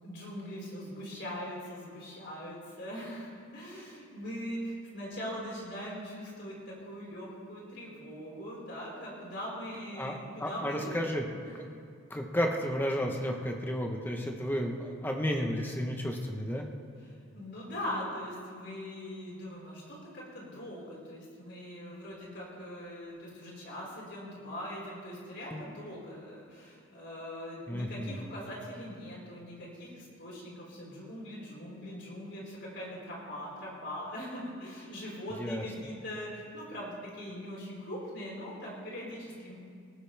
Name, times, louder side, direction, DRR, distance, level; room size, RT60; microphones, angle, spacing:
voice 1, 0.0-11.0 11.4-11.6 17.0-39.6, equal, 55° left, -5 dB, 4.9 m, -41 dB
voice 2, 10.4-11.2 11.6-11.7 12.1-16.6 25.5-25.6 27.7-28.1 35.4-35.6, equal, 10° left, 2 dB, 1.1 m, -32 dB
18.5 x 18.5 x 3.5 m, 2.3 s
head